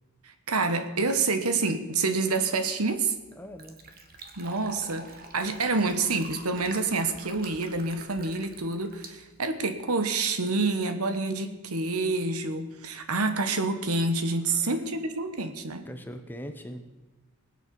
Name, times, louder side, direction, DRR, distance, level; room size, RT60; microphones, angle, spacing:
voice 1, 0.5-3.1 4.4-15.8, right 3 dB, 85° right, 9 dB, 1.3 m, -28 dB
Fill (with liquid), 2.8-9.9, right 3 dB, 40° right, 1.6 m, -46 dB
voice 2, 3.3-3.8 14.4-14.8 15.8-16.8, equal, 10° left, 7 dB, 1.0 m, -41 dB
20.0 x 8.4 x 7.0 m, 1.1 s
head